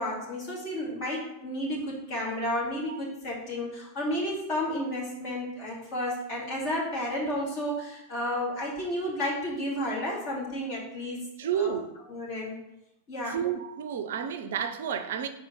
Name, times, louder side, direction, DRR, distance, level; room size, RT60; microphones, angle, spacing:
voice 1, 0.0-11.7 12.1-12.6 13.1-13.4, left 1 dB, 40° left, 2.5 m, -32 dB
voice 2, 11.4-12.0 13.3-15.3, right 8 dB, 60° right, 0.5 m, -30 dB
4.8 x 4.3 x 5.3 m
figure-of-eight pair, 90°, 0 cm